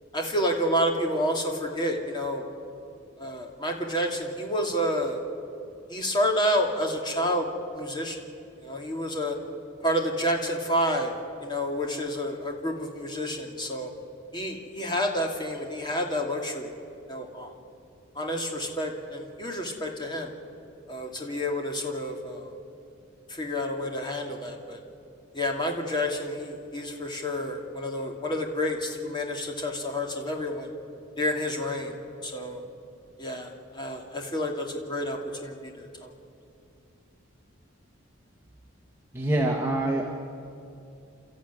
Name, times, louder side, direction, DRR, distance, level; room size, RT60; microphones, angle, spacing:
voice 1, 0.1-2.4 3.2-5.2 5.9-7.5 7.7-8.2 8.6-9.4 9.8-11.1 11.4-13.9 14.3-16.7 17.1-17.5 18.2-20.3 20.9-22.5 23.3-24.8 25.3-30.7 31.2-31.9 32.2-32.6 33.2-36.1, equal, 25° left, 2 dB, 2.5 m, -29 dB
voice 2, 39.1-40.2, right 1 dB, 15° right, 0 dB, 1.6 m, -26 dB
29.5 x 13.5 x 9.5 m, 2.6 s
head